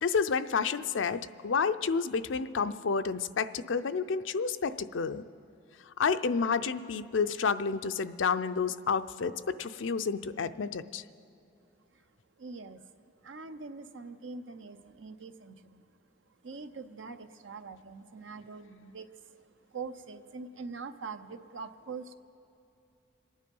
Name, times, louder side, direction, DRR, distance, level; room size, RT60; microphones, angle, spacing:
voice 1, 0.0-5.2 6.0-11.0, left 5 dB, 85° left, 11 dB, 0.5 m, -30 dB
voice 2, 12.4-12.8 13.2-15.8 16.4-19.4 19.7-22.1, right 4 dB, 85° right, 10 dB, 0.8 m, -43 dB
26.0 x 9.7 x 5.4 m, 2.8 s
head